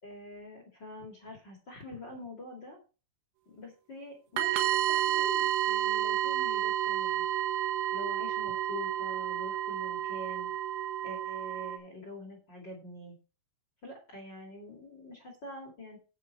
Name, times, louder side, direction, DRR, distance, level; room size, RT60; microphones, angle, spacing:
voice 1, 0.0-2.8 3.4-7.2 7.9-10.5 11.0-13.2 13.8-16.0, left 2 dB, 40° left, 2 dB, 1.6 m, -45 dB
sound 1, 4.4-11.8, right 11 dB, 80° right, 3.7 m, -30 dB
9.3 x 8.6 x 4.2 m, 0.34 s
omnidirectional pair, 5.7 m